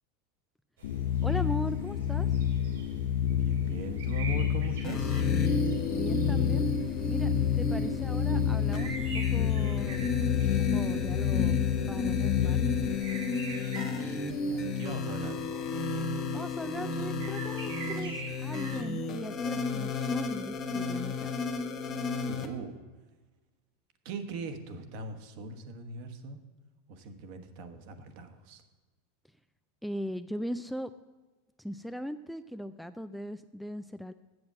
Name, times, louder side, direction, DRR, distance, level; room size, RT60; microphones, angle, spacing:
sound 1, 0.8-12.9, left 10 dB, 75° left, 0.6 m, -29 dB
sound 2, 0.8-18.8, right 4 dB, 90° right, 3.5 m, -47 dB
voice 1, 1.2-2.3 5.9-6.7 7.1-12.7 16.3-21.4 29.8-30.9 31.6-34.1, equal, ahead, 10 dB, 0.3 m, -39 dB
voice 2, 3.4-5.2 13.4-15.4 22.3-22.8 24.0-26.4 26.9-28.6, right 4 dB, 55° right, 7 dB, 1.2 m, -41 dB
sound 3, 4.8-22.5, left 4 dB, 35° left, 1.2 m, -32 dB
7.9 x 7.1 x 7.4 m, 1.2 s
supercardioid pair, 125°, 0 cm